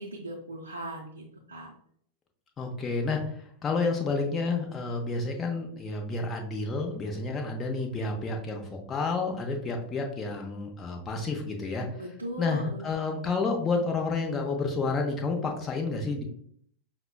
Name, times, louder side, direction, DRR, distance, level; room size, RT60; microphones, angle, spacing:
voice 1, 0.0-1.7 12.0-12.9, right 1 dB, 80° right, -2 dB, 0.5 m, -38 dB
voice 2, 2.6-3.2 3.6-11.9 12.4-16.2, left 3 dB, 20° left, 2 dB, 0.6 m, -30 dB
5.7 x 2.2 x 2.2 m, 0.65 s
figure-of-eight pair, 90°, 0 cm